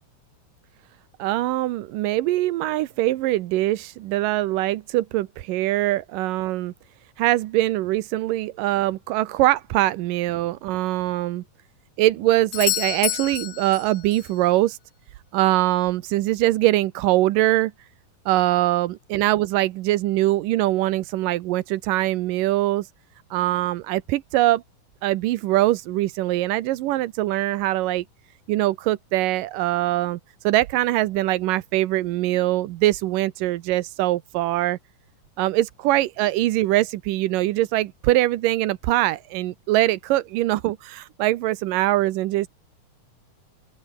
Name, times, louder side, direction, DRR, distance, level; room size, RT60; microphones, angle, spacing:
voice 1, 1.2-6.7 7.2-11.4 12.0-14.8 15.3-17.7 18.3-22.9 23.3-24.6 25.0-28.0 28.5-30.2 30.4-34.8 35.4-42.5, right 16 dB, 90° right, 2.6 m, -22 dB
Doorbell, 12.5-14.4 18.4-18.5, left 15 dB, 70° left, 2.1 m, -28 dB
open air
omnidirectional pair, 3.7 m